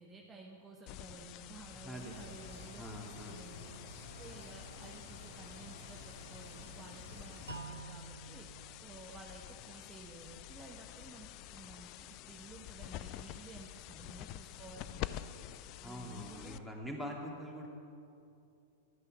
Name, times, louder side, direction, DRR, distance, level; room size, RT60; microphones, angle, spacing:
voice 1, 0.0-3.7 4.2-8.5 8.8-15.2 15.8-16.6, right 3 dB, 20° right, -1 dB, 1.2 m, -53 dB
sound 1, 0.9-16.9, left 14 dB, 40° left, 0.4 m, -48 dB
voice 2, 1.8-2.3 2.8-3.4 15.8-17.7, equal, 5° left, -2 dB, 2.5 m, -44 dB
sound 2, 1.9-7.6, left 2 dB, 80° left, 3.3 m, -52 dB
sound 3, 7.5-10.4, right 4 dB, 85° right, 0.3 m, -51 dB
13.0 x 9.5 x 6.3 m, 2.7 s
figure-of-eight pair, 100°, 0 cm